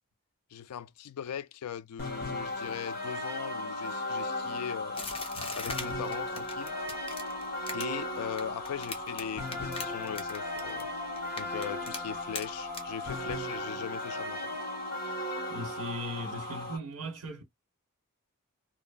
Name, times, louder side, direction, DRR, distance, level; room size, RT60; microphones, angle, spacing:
voice 1, 0.5-5.0 5.5-6.7 7.7-10.9 11.4-14.5, left 8 dB, 75° left, 0.3 m, -39 dB
sound 1, 2.0-16.8, left 1 dB, 45° left, 1.0 m, -36 dB
sound 2, 4.9-9.2 9.5-10.9 11.2-12.0 12.4-12.5 12.7-12.8, left 3 dB, 25° left, 0.7 m, -39 dB
voice 2, 15.5-17.4, equal, 90° right, 1.0 m, -38 dB
2.9 x 2.0 x 2.3 m
head